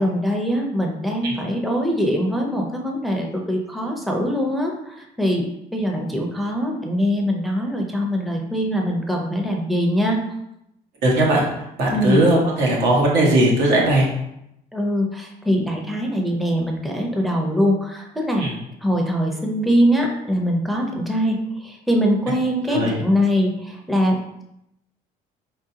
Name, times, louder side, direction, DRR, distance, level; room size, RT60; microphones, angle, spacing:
voice 1, 0.0-10.2 11.9-12.2 14.7-18.5 18.8-24.4, equal, ahead, 0 dB, 0.6 m, -22 dB
voice 2, 11.0-11.4 11.8-14.1 18.4-18.5 22.7-23.0, right 1 dB, 80° right, -3 dB, 1.4 m, -18 dB
4.5 x 3.7 x 2.8 m, 0.83 s
cardioid pair, 110°, 17 cm